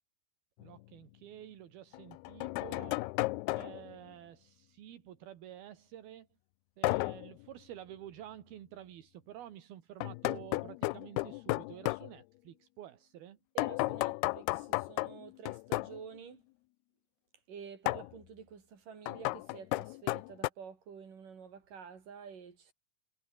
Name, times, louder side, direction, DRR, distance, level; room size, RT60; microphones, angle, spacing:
sound 1, 0.6-0.7 1.9-3.9 6.8-7.3 10.0-12.1 13.6-16.0 17.9-18.1 19.1-20.5, left 22 dB, 90° left, 2.6 m, -34 dB
voice 1, 0.6-3.0 3.5-6.3 6.8-13.4, right 11 dB, 75° right, 3.7 m, -50 dB
voice 2, 13.6-16.4 17.5-22.7, right 6 dB, 60° right, 5.5 m, -49 dB
omnidirectional pair, 4.4 m